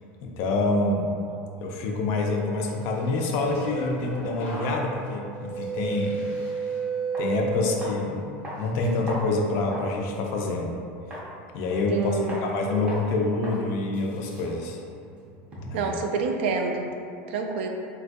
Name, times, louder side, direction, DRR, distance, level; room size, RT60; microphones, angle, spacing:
voice 1, 0.2-1.1 1.6-6.3 7.2-8.3 8.6-10.8 11.5-14.8 15.6-16.0, left 2 dB, 45° left, 1 dB, 0.4 m, -27 dB
sound 1, 3.1-8.1 8.5-9.0, right 4 dB, 85° left, 1.0 m, -32 dB
sound 2, 7.1-7.3 7.8-8.1 8.4-10.0 10.3-10.5 11.1-11.3 11.7-12.0 12.3-12.5 12.9-13.1 13.4-13.6 13.9-15.9, equal, 20° right, 0.5 m, -39 dB
voice 2, 11.9-12.4 15.7-16.9 17.3-17.7, right 4 dB, 75° right, 3 dB, 0.3 m, -27 dB
3.7 x 2.3 x 2.5 m, 2.5 s
supercardioid pair, 170°, 6 cm